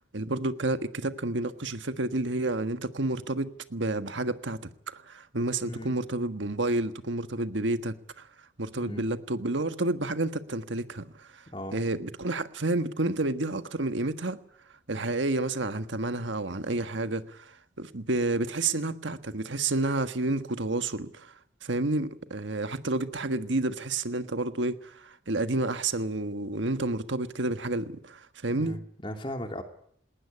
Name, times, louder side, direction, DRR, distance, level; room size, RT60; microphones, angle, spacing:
voice 1, 0.0-8.3 8.6-11.4 11.7-14.4 14.9-21.3 21.6-28.8, right 2 dB, 80° right, 1.5 m, -30 dB
voice 2, 5.6-6.0 8.8-9.0 11.5-11.8 28.5-29.6, left 1 dB, 25° left, 2.7 m, -37 dB
20.0 x 18.5 x 9.7 m
head